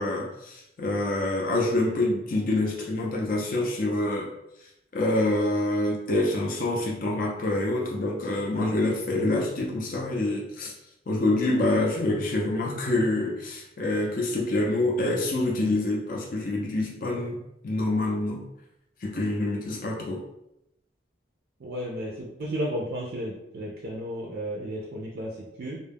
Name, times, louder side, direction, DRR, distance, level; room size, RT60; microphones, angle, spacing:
voice 1, 0.0-4.3 4.9-10.7 11.1-17.4 17.6-18.4 19.0-20.2, left 2 dB, 45° left, -2 dB, 0.4 m, -26 dB
voice 2, 21.6-25.8, equal, 50° right, -3 dB, 0.4 m, -33 dB
2.2 x 2.0 x 3.4 m, 0.85 s
head